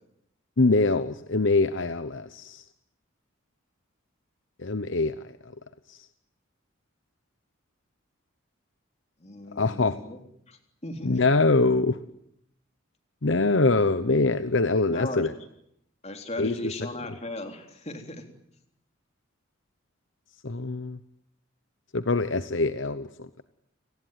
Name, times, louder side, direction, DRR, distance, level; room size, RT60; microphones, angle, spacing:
voice 1, 0.6-2.6 4.6-5.1 5.4-5.5 5.9-6.1 9.6-10.0 11.0-12.0 13.2-15.3 16.4-16.5 20.4-21.0 21.9-23.4, left 3 dB, 65° left, 12 dB, 1.0 m, -24 dB
voice 2, 9.2-10.2 10.5-11.3 14.9-15.3 16.0-18.2, left 1 dB, 30° left, 5 dB, 3.7 m, -37 dB
29.0 x 19.5 x 9.4 m, 0.76 s
head